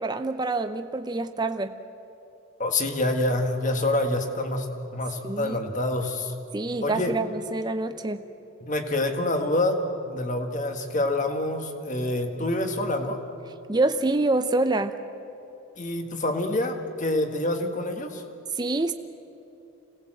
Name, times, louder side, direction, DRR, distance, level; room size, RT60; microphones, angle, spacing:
voice 1, 0.0-1.8 5.2-5.6 6.5-8.2 13.7-14.9 18.6-18.9, right 2 dB, 20° right, 8 dB, 0.6 m, -26 dB
voice 2, 2.6-4.7 4.9-6.3 6.8-7.1 8.6-13.2 15.8-18.2, left 1 dB, 35° left, 5 dB, 1.7 m, -26 dB
26.5 x 18.5 x 7.7 m, 2.9 s
head